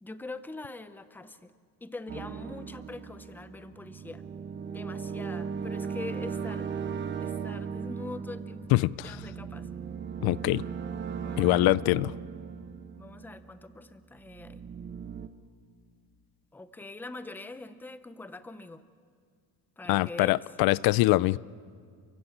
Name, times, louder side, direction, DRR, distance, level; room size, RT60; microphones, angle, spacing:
voice 1, 0.0-1.5 1.8-4.2 4.7-6.7 7.2-9.7 11.2-11.7 13.0-14.6 16.5-18.8 19.8-20.4, left 3 dB, 5° left, 12 dB, 0.6 m, -43 dB
sound 1, 2.1-13.8 14.2-15.3, right 6 dB, 30° right, 1.0 m, -37 dB
voice 2, 8.7-9.1 10.2-10.6 11.4-12.1 19.9-21.4, left 19 dB, 70° left, 21 dB, 0.5 m, -24 dB
29.5 x 15.5 x 8.7 m, 2.1 s
cardioid pair, 170°, 38 cm